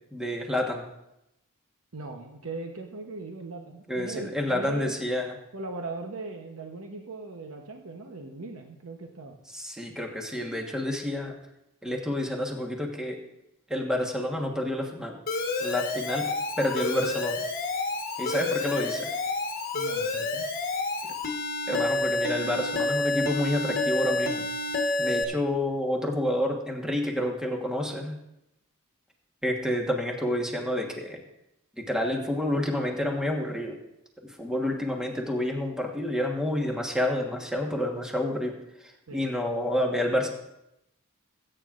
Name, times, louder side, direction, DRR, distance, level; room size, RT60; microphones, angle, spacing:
voice 1, 0.1-0.9 3.9-5.3 9.5-11.3 11.8-13.2 13.7-15.2 15.6-16.3 16.6-17.4 18.2-19.1 21.7-24.5 25.0-28.1 29.4-31.2 31.8-33.8 34.2-38.5 38.8-40.3, left 1 dB, 5° right, 1 dB, 1.3 m, -29 dB
voice 2, 1.9-5.0 5.5-9.4 19.7-20.5 39.1-39.3, right 3 dB, 70° right, 2 dB, 0.9 m, -39 dB
Alarm, 15.3-25.2, left 2 dB, 40° left, 1.3 m, -29 dB
20.0 x 8.8 x 2.5 m, 0.86 s
head